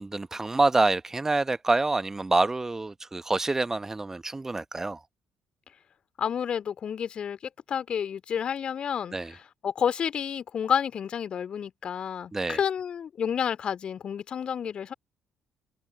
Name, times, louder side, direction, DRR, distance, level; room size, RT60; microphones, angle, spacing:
voice 1, 0.0-5.0 9.1-9.3 12.3-12.6, right 3 dB, 20° right, 1.4 m, -26 dB
voice 2, 6.2-7.4 7.7-9.2 9.6-14.9, left 8 dB, 45° left, 2.7 m, -30 dB
figure-of-eight pair, 45°, 2 cm